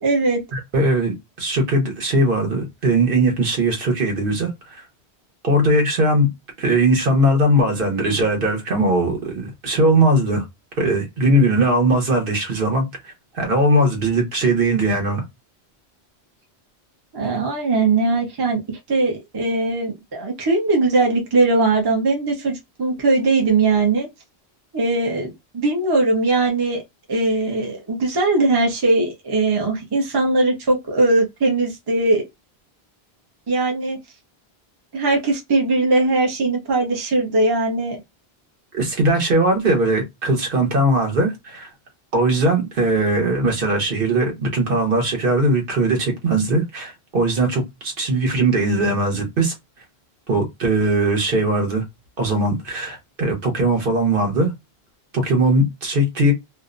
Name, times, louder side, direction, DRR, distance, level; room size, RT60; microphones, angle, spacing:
voice 1, 0.0-0.4 17.1-24.1 24.7-26.8 27.1-32.2 33.5-34.0 34.9-38.0, right 2 dB, 30° right, 0.6 m, -20 dB
voice 2, 0.5-4.8 5.4-6.3 6.6-10.4 10.8-15.2 38.7-41.7 42.1-49.5 50.3-51.8 52.2-54.5 55.1-56.3, right 1 dB, 60° right, 1.0 m, -19 dB
2.5 x 2.0 x 2.4 m
omnidirectional pair, 1.1 m